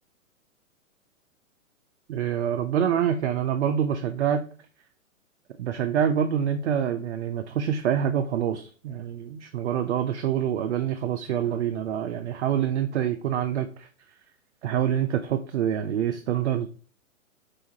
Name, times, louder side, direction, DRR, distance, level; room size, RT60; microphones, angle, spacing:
voice 1, 2.1-4.4 5.6-13.9 14.6-16.7, right 9 dB, 55° right, 6 dB, 0.5 m, -26 dB
3.8 x 3.4 x 2.7 m, 0.41 s
figure-of-eight pair, 120°, 41 cm